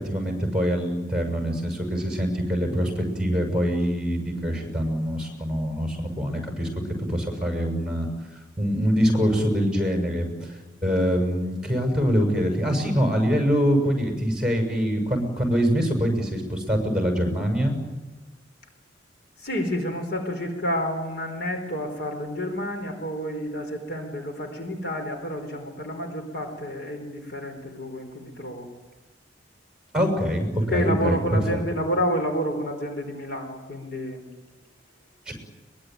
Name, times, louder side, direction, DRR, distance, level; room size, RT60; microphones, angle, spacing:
voice 1, 0.0-6.7 7.0-8.1 8.6-10.5 10.8-17.8 29.9-31.6 35.3-35.4, equal, 5° right, 3 dB, 6.7 m, -24 dB
voice 2, 19.4-28.7 30.7-34.2, equal, 55° left, 4 dB, 4.4 m, -29 dB
23.0 x 21.0 x 9.3 m, 1.2 s
head